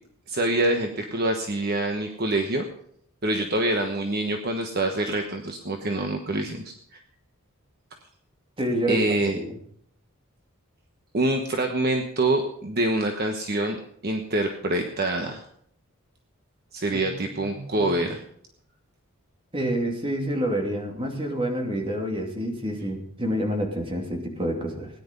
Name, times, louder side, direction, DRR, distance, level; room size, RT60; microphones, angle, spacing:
voice 1, 0.3-2.7 3.2-7.0 8.9-9.4 11.1-15.4 16.7-18.2, right 1 dB, 45° right, 4 dB, 1.2 m, -26 dB
voice 2, 8.6-9.6 16.9-17.9 19.5-24.9, right 1 dB, 25° right, 2 dB, 2.7 m, -28 dB
17.5 x 10.5 x 5.4 m, 0.66 s
head